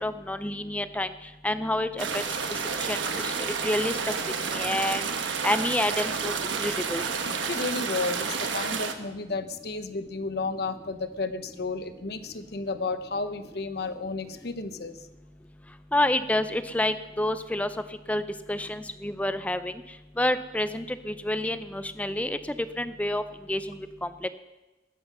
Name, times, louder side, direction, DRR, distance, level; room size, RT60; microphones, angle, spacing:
voice 1, 0.0-1.1 1.4-2.2 2.8-4.1 4.5-5.0 5.4-7.0 15.9-17.7 18.1-18.2 18.5-19.7 20.2-23.2 23.5-24.3, left 1 dB, 10° left, 11 dB, 0.5 m, -28 dB
sound 1, 2.0-8.9, right 5 dB, 80° right, 1.2 m, -30 dB
voice 2, 7.4-15.0, left 3 dB, 55° left, 10 dB, 0.9 m, -32 dB
20.5 x 7.9 x 5.6 m, 1.1 s
head